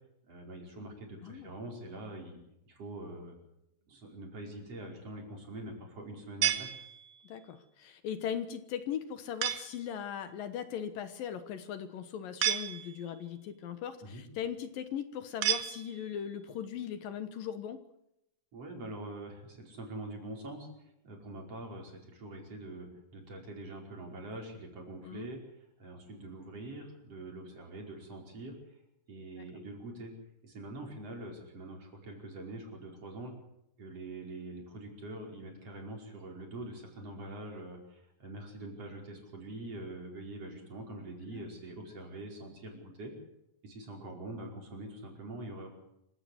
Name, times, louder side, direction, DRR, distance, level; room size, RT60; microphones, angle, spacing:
voice 1, 0.3-2.4 2.7-3.3 3.9-6.7 14.0-14.2 18.5-25.4 25.8-28.6 29.1-30.1 30.4-33.4 33.8-43.1 43.6-45.7, right 1 dB, 35° right, 1 dB, 6.0 m, -44 dB
sound 1, 6.4-7.4 9.4-9.9 12.4-13.2 15.4-16.3, right 10 dB, 65° right, 2.9 m, -33 dB
voice 2, 7.2-17.8 25.0-25.3 29.4-29.5 41.3-41.4, left 8 dB, 65° left, 10 dB, 2.7 m, -39 dB
26.0 x 16.0 x 8.0 m, 0.83 s
omnidirectional pair, 4.7 m